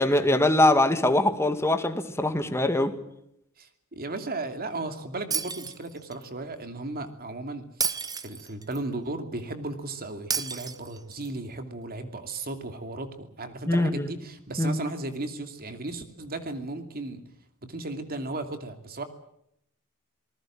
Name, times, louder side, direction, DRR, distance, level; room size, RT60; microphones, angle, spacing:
voice 1, 0.0-2.9 13.7-14.1 14.6-14.8, left 1 dB, 15° left, 8 dB, 2.1 m, -22 dB
voice 2, 3.6-7.9 8.2-17.2 17.6-19.0, right 2 dB, 45° right, 8 dB, 2.6 m, -35 dB
Shatter, 5.3-6.3 7.8-8.8 10.3-11.3, right 6 dB, 20° right, 1.1 m, -31 dB
27.0 x 19.5 x 7.6 m, 0.76 s
head